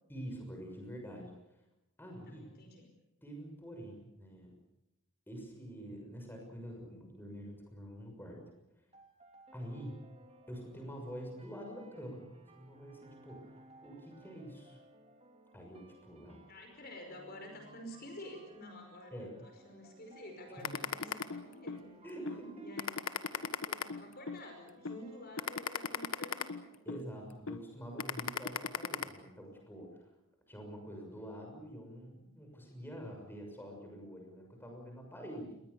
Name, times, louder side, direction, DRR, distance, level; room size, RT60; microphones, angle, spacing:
voice 1, 0.1-1.3 2.0-2.5 3.2-4.5 5.3-8.4 9.5-10.0 10.5-12.2 12.5-14.8 15.5-16.4 19.1-19.3 20.6-20.8 22.0-22.7 23.3-23.6 26.8-30.1 30.5-35.5, equal, 10° left, 1 dB, 6.4 m, -46 dB
voice 2, 2.3-2.9 16.5-21.9 22.2-23.0 23.7-26.6, left 1 dB, 45° left, 4 dB, 5.2 m, -50 dB
sound 1, 8.9-27.9, right 2 dB, 25° right, 3.2 m, -61 dB
sound 2, 20.6-21.8 22.3-22.4 22.8-24.4 24.9-25.0 25.4-27.0 27.5-27.6 28.0-29.0, left 6 dB, 70° left, 1.4 m, -36 dB
28.5 x 21.5 x 7.0 m, 0.92 s
head